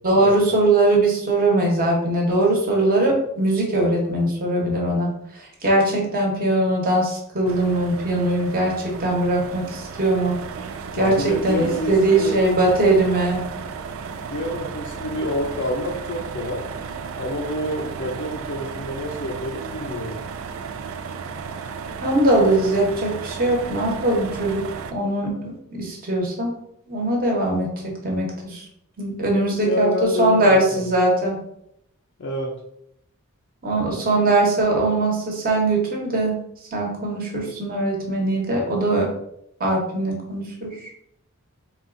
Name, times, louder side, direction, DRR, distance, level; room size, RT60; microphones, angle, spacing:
voice 1, 0.0-5.1 5.6-10.4 11.0-13.5 22.0-24.6 24.9-26.5 26.9-28.7 29.0-31.4 33.6-36.4 36.7-39.1 39.6-40.9, right 2 dB, 40° right, -1 dB, 1.1 m, -21 dB
sound 1, 7.4-24.9, right 5 dB, 60° right, 0.4 m, -34 dB
voice 2, 11.0-12.5 14.3-16.7 17.2-20.2 29.6-30.8 32.2-32.5, left 1 dB, 55° left, -1 dB, 0.5 m, -28 dB
3.9 x 2.4 x 3.7 m, 0.74 s
head